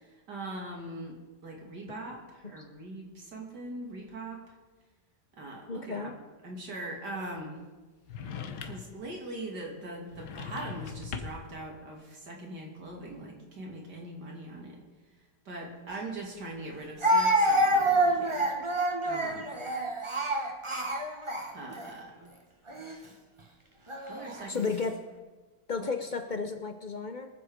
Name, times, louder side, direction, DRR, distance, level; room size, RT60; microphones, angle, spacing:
voice 1, 0.3-4.4 5.4-6.1 6.4-7.6 8.6-14.8 15.4-18.5 19.0-19.5 21.5-22.1 24.1-24.7 25.8-25.9, right 1 dB, 75° right, -1 dB, 3.2 m, -41 dB
voice 2, 5.7-6.2 24.5-25.0 25.7-27.3, left 4 dB, 55° left, 8 dB, 0.5 m, -33 dB
sound 1, 8.1-9.0 10.1-11.5, left 6 dB, 85° left, 1.7 m, -40 dB
Speech, 15.9-16.0 17.0-21.9 22.7-22.9 23.9-24.5, right 1 dB, 20° right, 1.2 m, -27 dB
22.5 x 7.7 x 5.0 m, 1.3 s
omnidirectional pair, 1.8 m